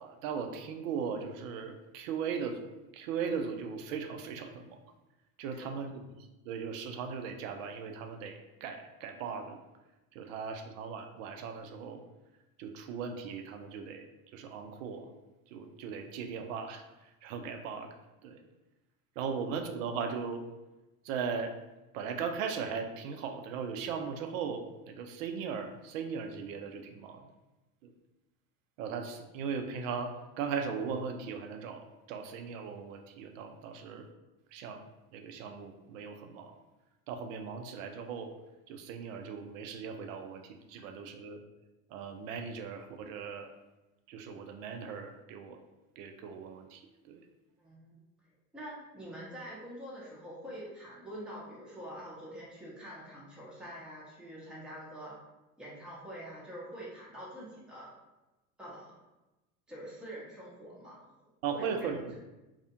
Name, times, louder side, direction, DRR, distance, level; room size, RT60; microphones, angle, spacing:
voice 1, 0.0-2.7 2.9-4.8 5.4-5.9 6.2-9.6 10.1-12.0 12.6-14.1 14.3-15.1 15.5-17.9 18.2-18.4 19.2-20.4 21.0-21.5 21.9-27.3 27.8-27.9 28.8-34.1 34.5-34.8 35.1-36.6 37.1-38.3 38.7-41.4 41.9-43.5 44.1-45.6 46.0-47.2 61.4-62.2, right 6 dB, 55° right, 5 dB, 0.5 m, -38 dB
voice 2, 5.5-5.8 47.6-48.0 48.5-55.2 55.6-57.9 58.6-59.0 59.7-61.1 61.5-62.2, equal, ahead, -6 dB, 0.6 m, -45 dB
2.4 x 2.1 x 2.8 m, 1.0 s
hypercardioid pair, 80°, 50 cm